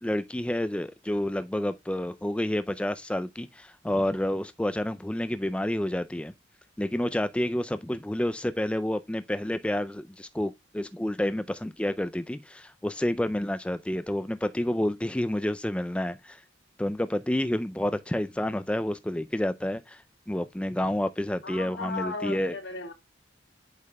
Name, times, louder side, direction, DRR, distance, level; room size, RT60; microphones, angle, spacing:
voice 1, 0.0-6.3 6.8-16.4 16.8-22.6, left 1 dB, 5° left, 0.3 m, -29 dB
voice 2, 21.4-22.9, left 3 dB, 65° left, 2.0 m, -36 dB
8.4 x 6.4 x 2.2 m
head